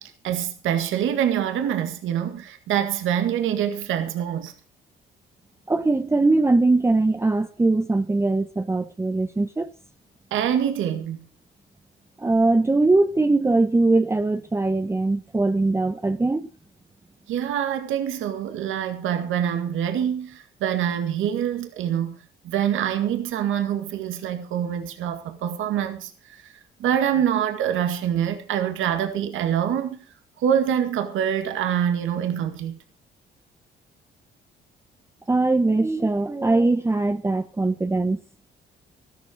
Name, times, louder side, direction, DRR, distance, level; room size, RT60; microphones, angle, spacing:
voice 1, 0.0-4.5 10.3-11.2 17.3-22.2 22.4-26.5 26.8-30.0 30.4-32.8, right 9 dB, 85° right, 1.9 m, -25 dB
voice 2, 5.7-9.7 12.2-16.5 35.3-38.2, right 2 dB, 15° right, 0.7 m, -21 dB
14.0 x 12.5 x 5.0 m
cardioid pair, 90°, 20 cm